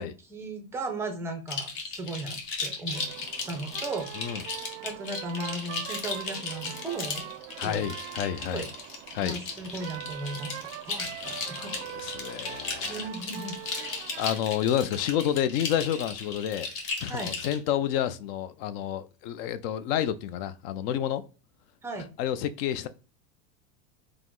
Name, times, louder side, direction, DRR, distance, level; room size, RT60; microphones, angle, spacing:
voice 1, 0.0-3.1 3.5-4.5 4.8-7.3 7.6-7.9 8.4-8.7 9.2-11.7 12.8-13.9 17.1-17.3 21.8-22.1, right 2 dB, 5° right, 0.4 m, -36 dB
sound 1, 1.5-17.6, left 4 dB, 40° left, 1.0 m, -36 dB
sound 2, 2.9-14.4, right 15 dB, 75° right, 0.5 m, -43 dB
voice 2, 7.6-8.7 9.1-9.4 11.0-13.0 14.2-16.7 17.0-21.2 22.2-22.9, left 10 dB, 55° left, 0.5 m, -30 dB
4.8 x 2.0 x 3.7 m
supercardioid pair, 160°, 35 cm